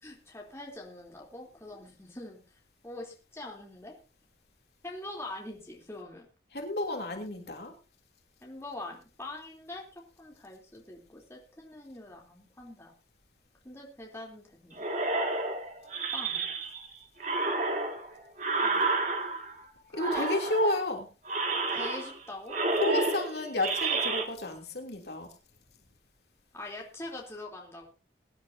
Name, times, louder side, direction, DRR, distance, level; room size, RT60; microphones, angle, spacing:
voice 1, 0.0-2.4 2.8-4.0 4.8-6.2 8.4-12.9 13.6-14.8 16.1-16.5 17.4-17.9 18.6-18.9 20.0-20.3 21.7-22.6 26.5-27.9, left 2 dB, 15° left, -1 dB, 3.4 m, -43 dB
voice 2, 6.5-7.7 19.9-21.1 22.8-25.3, left 1 dB, 65° left, 2 dB, 3.1 m, -31 dB
sound 1, 14.8-16.9 17.2-19.6 20.0-20.9 21.2-22.2 22.5-24.2, right 3 dB, 45° right, 2.1 m, -30 dB
23.0 x 10.5 x 2.8 m, 0.32 s
head